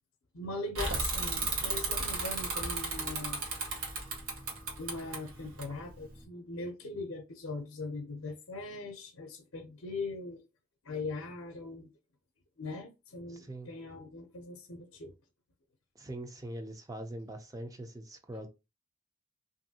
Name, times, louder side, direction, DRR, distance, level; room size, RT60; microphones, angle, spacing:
voice 1, 0.3-3.4 4.8-10.4 10.8-11.9 12.6-15.1, left 3 dB, 65° left, 0.6 m, -40 dB
Bicycle / Mechanisms, 0.7-6.2, right 3 dB, 90° right, 1.0 m, -34 dB
voice 2, 13.3-13.7 16.0-18.5, right 1 dB, 15° right, 0.4 m, -42 dB
3.1 x 2.6 x 2.7 m
head